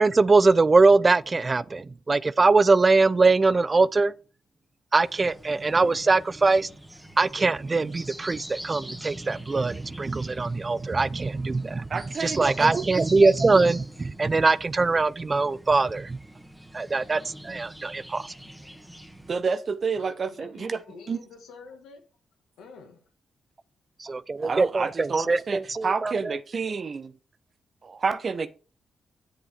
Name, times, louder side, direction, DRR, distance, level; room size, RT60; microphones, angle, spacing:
voice 1, 0.0-4.1 4.9-6.7 7.2-11.9 12.2-16.2 16.7-18.3 24.0-26.4, right 3 dB, 40° right, 0.4 m, -22 dB
sound 1, 5.0-19.4, right 1 dB, 5° right, 1.8 m, -43 dB
voice 2, 11.9-12.8 19.3-20.8 21.1-21.2 24.4-27.1 27.8-28.5, right 5 dB, 55° right, 0.8 m, -29 dB
voice 3, 19.9-22.0 22.6-23.0, left 4 dB, 80° left, 1.6 m, -47 dB
7.9 x 7.2 x 3.4 m
hypercardioid pair, 40°, 0 cm